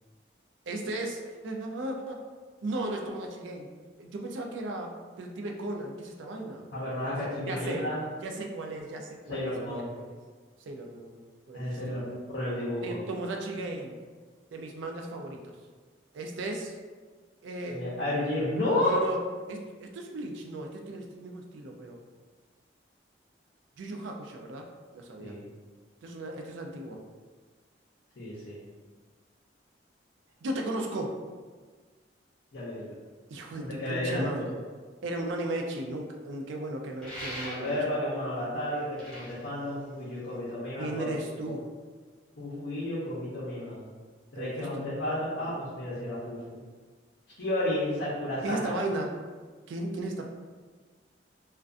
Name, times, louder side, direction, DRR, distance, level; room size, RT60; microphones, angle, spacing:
voice 1, 0.7-2.2 2.6-3.7 4.0-4.9 5.2-6.6 7.0-7.1 7.5-7.8 8.2-10.1 10.7-11.2 11.5-12.2 12.8-14.0 14.5-15.4 16.1-16.8 17.4-17.8 18.8-19.2 19.5-22.0 23.8-24.7 24.9-25.4 26.0-27.0 30.4-31.2 33.3-34.6 35.0-37.8 40.8-41.7 44.3-44.7 45.4-45.5 48.4-49.2 49.7-50.3, right 2 dB, 80° right, 2 dB, 0.4 m, -36 dB
voice 2, 6.7-8.0 9.3-9.9 11.5-12.0 12.3-13.0 17.7-19.0 25.2-25.4 28.2-28.6 32.5-32.9 33.5-34.5 37.5-41.0 41.4-41.5 42.4-43.9 44.3-46.6 47.4-48.8, left 1 dB, 60° left, -8 dB, 0.6 m, -32 dB
sound 1, 37.0-38.0 38.8-40.5, equal, 5° left, 0.8 m, -41 dB
2.4 x 2.2 x 2.4 m, 1.4 s
head